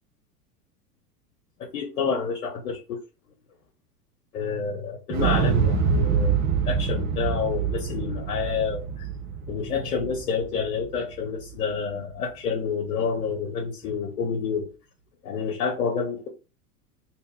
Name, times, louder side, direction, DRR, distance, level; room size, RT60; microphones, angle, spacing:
voice 1, 1.6-3.0 4.3-6.4 6.6-9.1 9.5-14.7 15.2-16.3, left 5 dB, 65° left, 0.8 m, -28 dB
Explosion, 5.1-11.1 11.5-11.6, right 6 dB, 60° right, 0.7 m, -25 dB
2.7 x 2.1 x 3.4 m
figure-of-eight pair, 90°, 48 cm